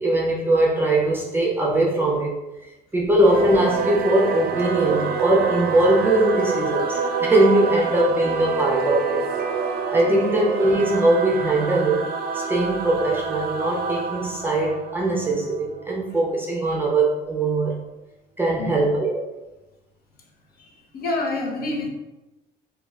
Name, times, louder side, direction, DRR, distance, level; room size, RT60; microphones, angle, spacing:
voice 1, 0.0-2.4 2.9-9.2 9.9-12.1 12.3-17.8 18.4-19.2, right 2 dB, 10° right, -3 dB, 0.5 m, -21 dB
Singing / Musical instrument, 3.2-16.1, right 5 dB, 65° right, 0.4 m, -27 dB
voice 2, 20.5-21.9, left 2 dB, 65° left, -1 dB, 0.7 m, -29 dB
2.4 x 2.3 x 3.1 m, 1.0 s
cardioid pair, 110°, 17 cm